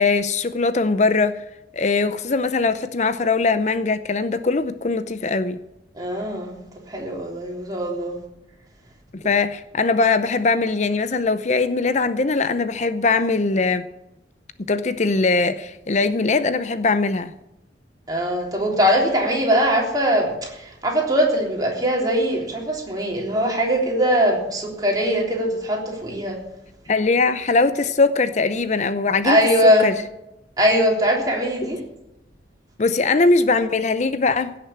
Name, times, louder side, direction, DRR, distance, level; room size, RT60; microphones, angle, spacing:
voice 1, 0.0-1.4 1.7-5.6 9.1-13.9 14.7-17.3 26.9-29.9 32.8-34.6, left 3 dB, 40° left, 0.6 m, -21 dB
voice 2, 6.0-6.6 6.9-8.2 18.1-26.4 29.2-29.9 30.6-31.8, equal, 20° right, 3.4 m, -21 dB
16.5 x 6.8 x 8.7 m
head